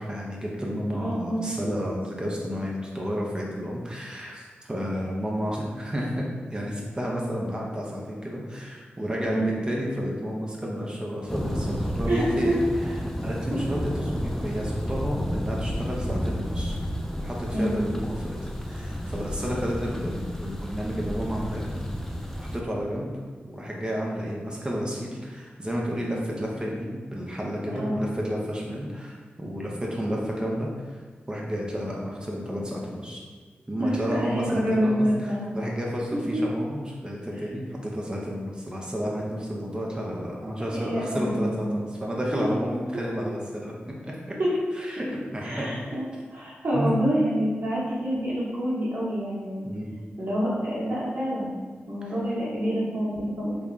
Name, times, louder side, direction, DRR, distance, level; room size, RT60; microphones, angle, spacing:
voice 1, 0.0-6.2 6.5-12.6 13.2-16.8 17.2-18.4 18.6-21.7 22.4-23.1 23.5-31.0 31.3-33.2 33.7-43.7 44.0-44.1 44.7-45.7 46.7-46.9 49.6-49.9, equal, 20° right, -3 dB, 0.8 m, -31 dB
voice 2, 1.0-1.5 9.2-9.5 12.1-12.6 17.5-17.7 27.7-28.0 33.8-35.5 36.1-36.4 40.7-41.6 42.3-42.4 44.4-44.6 45.4-46.0 46.3-49.6 50.2-51.5 51.9-53.6, equal, 50° right, -8 dB, 1.1 m, -27 dB
Thunder, 11.3-22.6, equal, 10° left, 0.4 m, -31 dB
3.4 x 2.2 x 3.8 m, 1.5 s
cardioid pair, 40°, 4 cm